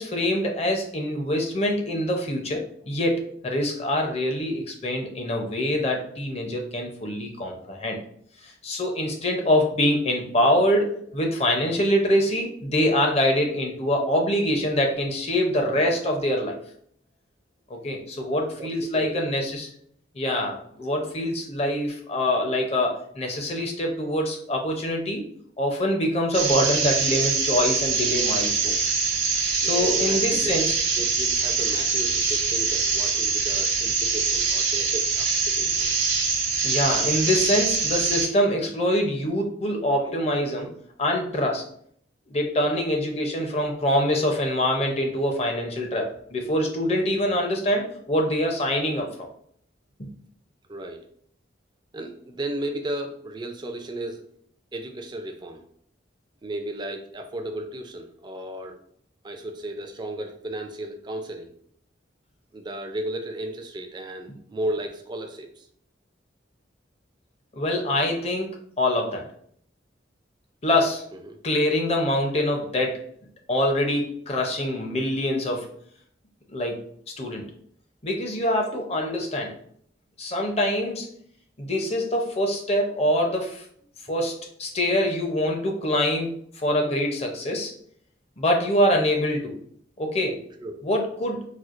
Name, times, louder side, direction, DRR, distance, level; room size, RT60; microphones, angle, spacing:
voice 1, 0.0-8.0 8.4-16.6 17.7-19.7 20.1-25.3 25.6-28.8 29.6-30.8 36.6-40.7 41.0-41.6 42.3-49.3 50.0-50.1 67.5-68.5 68.8-69.3 70.6-71.0 71.4-73.0 73.5-75.7 76.5-76.8 77.2-77.5 78.0-79.5 80.2-81.1 81.6-83.6 84.1-87.7 88.4-89.5 90.0-90.4 90.8-91.5, left 1 dB, 35° left, 2 dB, 0.5 m, -24 dB
voice 2, 18.6-19.3 29.6-30.6 31.0-35.9 40.0-40.2 40.6-40.7 42.7-42.8 50.7-51.1 51.9-54.2 54.7-55.6 56.4-58.8 59.2-61.5 62.5-65.7 70.7-71.4 90.6-90.8, right 1 dB, 25° right, 5 dB, 0.3 m, -34 dB
sound 1, 26.3-38.3, right 4 dB, 75° right, 0.9 m, -24 dB
4.3 x 2.3 x 2.4 m, 0.65 s
head